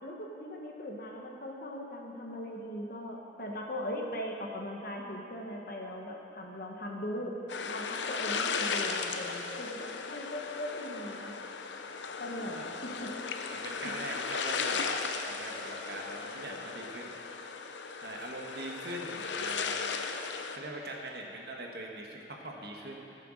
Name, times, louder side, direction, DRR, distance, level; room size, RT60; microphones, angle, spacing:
voice 1, 0.0-7.4 7.7-11.3 12.2-13.1, equal, 50° left, 0 dB, 1.3 m, -39 dB
sound 1, 7.5-20.6, left 5 dB, 85° left, 0.7 m, -36 dB
voice 2, 12.5-13.1 13.5-17.2 18.0-19.9 20.5-23.2, right 1 dB, 60° right, 0 dB, 1.4 m, -42 dB
14.5 x 6.8 x 6.5 m, 2.8 s
head